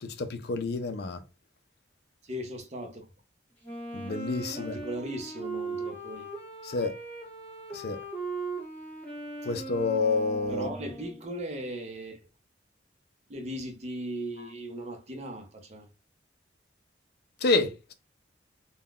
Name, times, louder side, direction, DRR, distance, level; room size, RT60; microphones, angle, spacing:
voice 1, 0.0-1.2 3.9-4.8 6.6-6.9 7.7-8.0 9.5-10.7 17.4-17.9, left 3 dB, 60° left, 0.4 m, -28 dB
voice 2, 2.2-3.1 4.6-6.3 10.5-12.2 13.3-15.9, right 1 dB, 35° right, 0.6 m, -38 dB
Wind instrument woodwind instrument, 3.6-11.3, right 3 dB, 10° left, 1.5 m, -39 dB
3.5 x 2.2 x 2.3 m
head